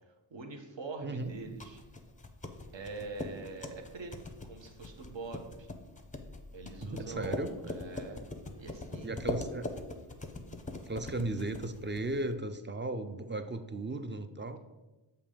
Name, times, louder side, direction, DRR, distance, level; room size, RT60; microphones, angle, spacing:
voice 1, 0.3-1.8 2.7-4.1 4.4-5.7 6.5-8.3 8.6-9.2, right 3 dB, 65° right, 3 dB, 1.0 m, -44 dB
voice 2, 1.0-1.3 6.8-7.5 9.0-9.7 10.9-14.6, right 2 dB, 25° right, 9 dB, 0.4 m, -36 dB
sound 1, 1.3-12.3, left 2 dB, 15° left, 0.6 m, -42 dB
6.9 x 2.9 x 5.0 m, 1.1 s
wide cardioid pair, 60°, 47 cm